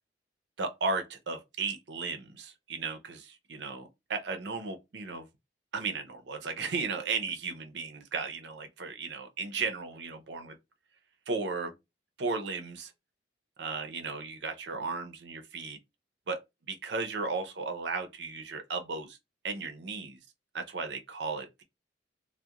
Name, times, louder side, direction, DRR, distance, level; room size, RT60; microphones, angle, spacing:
voice 1, 0.6-5.3 5.7-10.6 11.3-11.7 12.2-12.9 13.6-15.8 16.3-16.4 16.7-19.2 19.4-20.2 20.5-21.6, right 4 dB, 70° right, 0.5 m, -35 dB
2.3 x 2.1 x 2.8 m
head